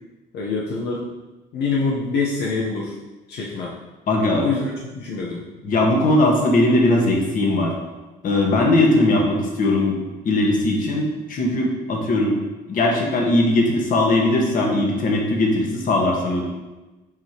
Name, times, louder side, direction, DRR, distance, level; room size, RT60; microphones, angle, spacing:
voice 1, 0.3-1.1 1.5-2.9 3.3-3.8 4.4-5.4, left 4 dB, 80° left, -4 dB, 1.0 m, -25 dB
voice 2, 4.1-4.4 5.6-7.7 8.2-10.0 10.2-12.4 12.7-16.4, left 1 dB, 55° left, 0 dB, 1.5 m, -19 dB
7.3 x 4.9 x 3.0 m, 1.1 s
cardioid pair, 110°, 17 cm